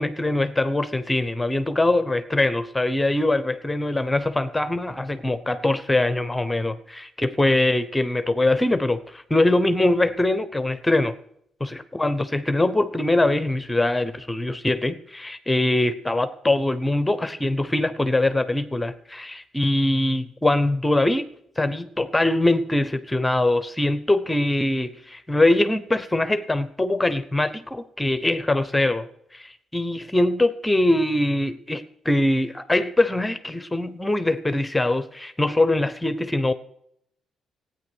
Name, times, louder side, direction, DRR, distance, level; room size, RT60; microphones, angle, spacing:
voice 1, 0.0-11.1 11.6-21.3 21.6-29.1 29.3-36.5, left 2 dB, 10° left, 12 dB, 0.8 m, -22 dB
15.0 x 9.2 x 6.3 m, 0.73 s
cardioid pair, 90°, 0 cm